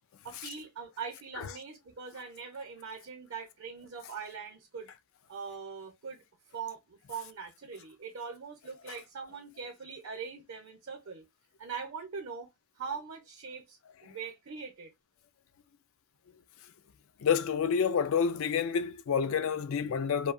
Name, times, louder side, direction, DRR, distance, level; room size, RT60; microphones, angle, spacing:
voice 1, 0.2-4.9 5.3-6.2 6.5-11.2 11.6-12.5 12.8-14.9, right 5 dB, 60° right, 0.8 m, -42 dB
voice 2, 17.2-20.3, left 7 dB, 60° left, 0.4 m, -28 dB
2.7 x 2.2 x 2.5 m
head